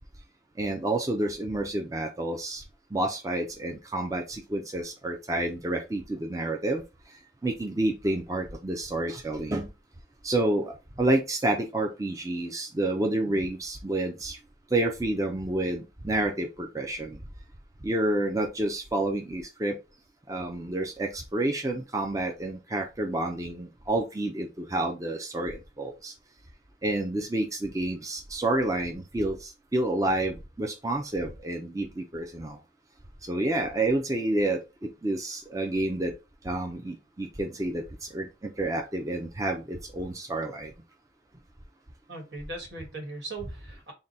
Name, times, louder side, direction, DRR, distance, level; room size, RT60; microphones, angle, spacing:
voice 1, 0.6-2.6 2.9-6.8 7.4-9.7 10.2-14.4 14.7-17.2 17.8-19.8 20.3-26.1 26.8-32.6 33.3-36.1 36.4-40.7, right 1 dB, 20° right, 3 dB, 0.5 m, -29 dB
voice 2, 42.1-43.9, right 2 dB, 80° right, 1 dB, 1.7 m, -39 dB
3.6 x 2.2 x 4.0 m, 0.27 s
head